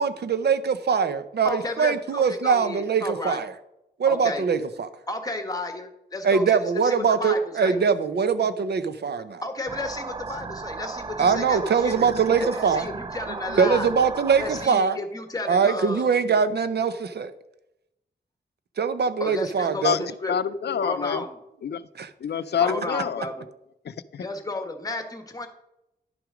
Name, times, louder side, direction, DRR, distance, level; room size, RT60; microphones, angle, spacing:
voice 1, 0.0-3.5 4.0-4.9 6.2-9.4 11.2-12.9 13.5-15.0 15.5-17.3 18.8-20.1 22.0-22.1, right 6 dB, 70° right, 12 dB, 0.7 m, -22 dB
voice 2, 1.4-3.4 4.1-4.4 5.1-7.8 9.4-12.1 12.4-13.9 14.4-16.1 19.2-20.3 20.8-21.4 22.6-23.5 24.2-25.5, left 2 dB, 20° left, 6 dB, 1.4 m, -33 dB
sound 1, 9.7-14.7, right 4 dB, 25° right, 0.4 m, -36 dB
voice 3, 20.3-21.2 21.6-21.8 22.2-23.2 23.9-24.2, left 7 dB, 70° left, 15 dB, 0.5 m, -26 dB
11.0 x 6.0 x 5.0 m, 0.87 s
wide cardioid pair, 105°, 18 cm